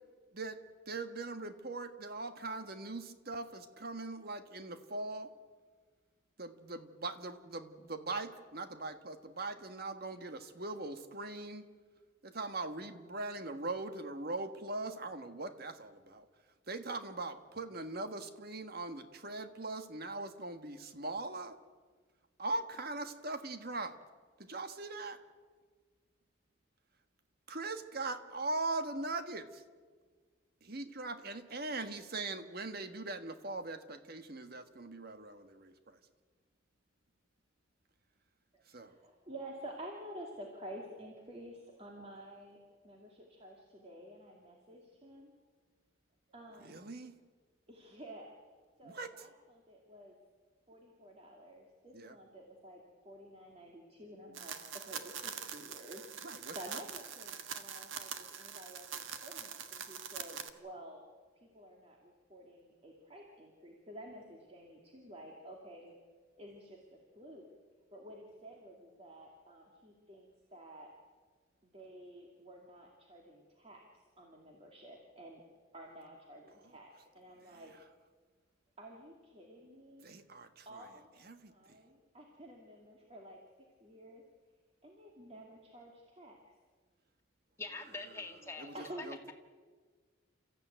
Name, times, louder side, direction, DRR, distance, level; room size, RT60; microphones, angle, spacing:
voice 1, 0.9-5.3 6.4-11.6 12.2-16.2 16.7-21.5 22.4-24.0 24.4-25.2 27.5-29.6 30.6-36.0 38.7-38.9 46.6-47.1 48.8-49.3 51.9-52.1 56.2-56.5 80.0-80.8 81.2-81.5 88.6-88.7 89.0-89.3, right 2 dB, 50° right, 8 dB, 1.5 m, -41 dB
voice 2, 38.5-42.6 42.8-45.3 46.3-46.9 47.7-48.4 48.8-50.2 50.7-61.1 61.4-65.9 66.4-67.4 67.9-70.9 71.6-75.4 75.7-77.7 78.8-80.1 80.6-81.1 81.4-83.4 83.8-84.2 84.8-86.4 88.7-89.0, right 1 dB, 30° right, 0 dB, 2.4 m, -51 dB
sound 1, 54.3-60.5, right 7 dB, 75° right, 1.5 m, -44 dB
voice 3, 87.6-88.7, left 3 dB, 15° left, 2 dB, 2.1 m, -43 dB
29.0 x 14.5 x 9.2 m, 1.5 s
head